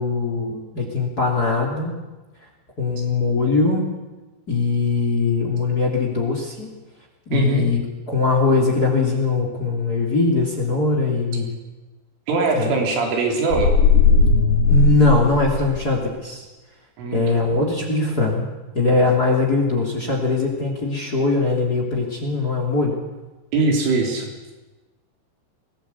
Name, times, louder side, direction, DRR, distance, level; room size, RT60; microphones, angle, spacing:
voice 1, 0.0-2.0 2.8-3.9 4.5-6.7 7.3-11.5 12.6-12.7 14.7-16.5 17.1-18.5 18.7-22.9, left 3 dB, 25° left, 2 dB, 2.8 m, -21 dB
voice 2, 7.3-7.7 12.3-13.7 17.0-17.3 23.5-24.3, right 3 dB, 90° right, 1 dB, 6.2 m, -21 dB
sound 1, 13.5-15.9, left 4 dB, 75° left, 5.5 m, -17 dB
22.5 x 17.5 x 8.4 m, 1.1 s
omnidirectional pair, 5.5 m